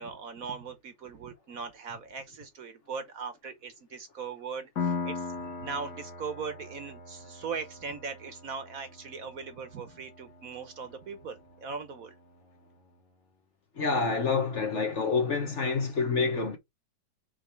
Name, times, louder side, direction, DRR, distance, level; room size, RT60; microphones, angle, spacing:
voice 1, 0.0-12.1, right 5 dB, 55° right, 1.3 m, -39 dB
Piano, 4.8-12.1, left 4 dB, 65° left, 1.9 m, -40 dB
voice 2, 13.8-16.6, left 4 dB, 45° left, 1.3 m, -27 dB
6.3 x 3.4 x 4.5 m
omnidirectional pair, 1.9 m